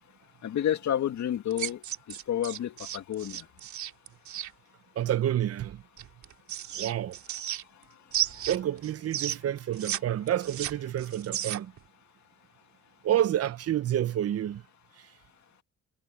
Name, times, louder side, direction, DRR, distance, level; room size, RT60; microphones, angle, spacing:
voice 1, 0.4-1.8 2.1-3.4, left 10 dB, 65° left, 2.3 m, -30 dB
sound 1, 1.5-4.5 6.0-7.8 8.1-10.0 10.3-11.8, right 11 dB, 70° right, 2.7 m, -33 dB
voice 2, 5.0-5.8 6.7-7.2 8.5-11.7 13.0-14.6, right 11 dB, 55° right, 0.7 m, -29 dB
cardioid pair, 90°, 30 cm